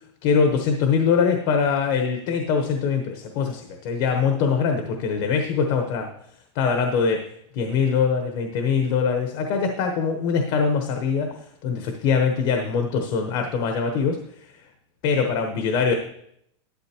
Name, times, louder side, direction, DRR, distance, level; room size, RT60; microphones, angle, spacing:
voice 1, 0.2-6.1 6.5-7.3 7.5-11.3 11.6-14.2 15.0-15.9, left 5 dB, 50° left, 4 dB, 1.1 m, -22 dB
11.5 x 8.9 x 3.0 m, 0.72 s
supercardioid pair, 145°, 16 cm